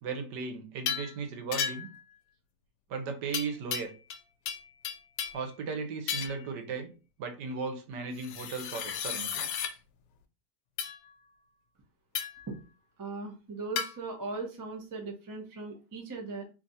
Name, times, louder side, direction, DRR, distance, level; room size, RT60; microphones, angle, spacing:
voice 1, 0.0-1.9 2.9-3.9 5.3-6.9 7.2-9.3, right 5 dB, 80° right, 5 dB, 1.4 m, -36 dB
sound 1, 0.9-1.1 1.5-2.0 3.3-4.2 4.5-5.5 6.1-6.5 8.2-9.7 10.8-11.0 12.1-12.5 13.8-13.9, left 7 dB, 80° left, 1.2 m, -34 dB
voice 2, 13.0-16.4, right 3 dB, 25° right, 2 dB, 0.4 m, -38 dB
3.2 x 2.4 x 4.0 m, 0.32 s
omnidirectional pair, 1.8 m